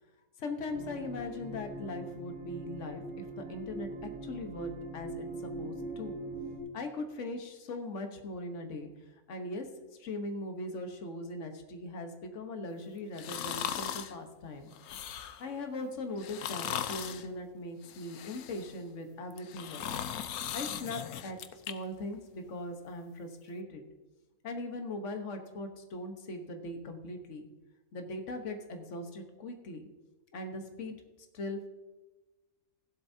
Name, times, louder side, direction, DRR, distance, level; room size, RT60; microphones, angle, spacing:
voice 1, 0.4-6.2 6.7-8.9 9.3-9.7 10.0-14.7 15.4-19.8 20.5-21.4 21.7-23.9 24.4-27.5 27.9-29.8 30.3-31.0 31.3-31.7, left 2 dB, 60° left, 5 dB, 1.4 m, -40 dB
sound 1, 0.7-6.6, right 2 dB, 50° right, 2.3 m, -42 dB
sound 2, 13.2-14.1 14.7-15.5 16.2-17.3 17.8-18.8 19.3-21.7 22.1-22.2, left 9 dB, 90° left, 1.2 m, -38 dB
15.5 x 11.5 x 2.7 m, 1.1 s
omnidirectional pair, 1.5 m